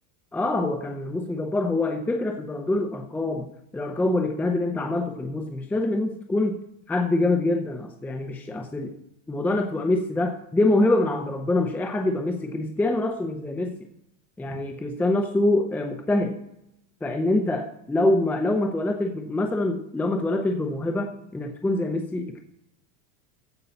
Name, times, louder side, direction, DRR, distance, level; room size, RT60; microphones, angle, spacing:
voice 1, 0.3-6.6 6.9-8.9 9.3-13.8 14.4-16.4 17.0-22.4, left 2 dB, 5° left, 4 dB, 0.6 m, -25 dB
15.0 x 5.4 x 8.3 m, 0.80 s
supercardioid pair, 160°, 39 cm